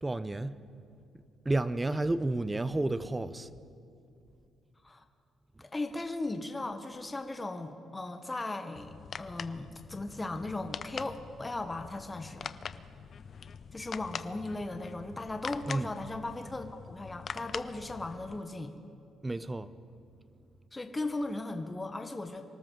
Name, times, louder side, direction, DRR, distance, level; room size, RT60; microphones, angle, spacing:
voice 1, 0.0-0.5 1.4-3.5 15.7-15.9 19.2-19.7, right 2 dB, 15° right, 14 dB, 0.6 m, -31 dB
voice 2, 5.6-8.9 9.2-12.5 13.7-18.7 20.7-22.4, left 2 dB, 20° left, 6 dB, 1.0 m, -37 dB
sound 1, 8.8-18.4, left 6 dB, 50° left, 0.5 m, -44 dB
25.5 x 13.0 x 3.8 m, 2.5 s
cardioid pair, 90°, 0 cm